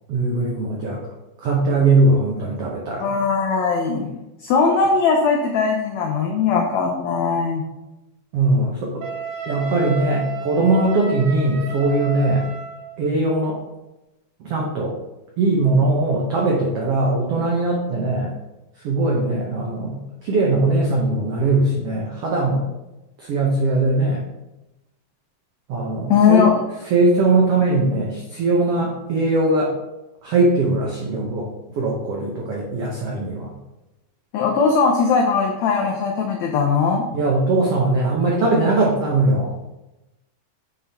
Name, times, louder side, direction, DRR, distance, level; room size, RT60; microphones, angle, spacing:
voice 1, 0.1-1.0 1.4-3.1 8.3-9.0 9.5-12.5 13.0-13.6 14.4-14.9 15.4-18.3 18.8-22.6 23.2-24.2 25.7-26.4 26.9-29.7 30.2-33.5 37.1-39.6, right 2 dB, 80° right, -2 dB, 1.3 m, -20 dB
voice 2, 3.0-7.6 26.1-26.6 34.3-37.1, left 5 dB, 85° left, 1 dB, 1.5 m, -19 dB
Wind instrument woodwind instrument, 9.0-12.9, right 6 dB, 65° right, 3.4 m, -32 dB
9.1 x 4.2 x 3.5 m, 0.99 s
omnidirectional pair, 4.0 m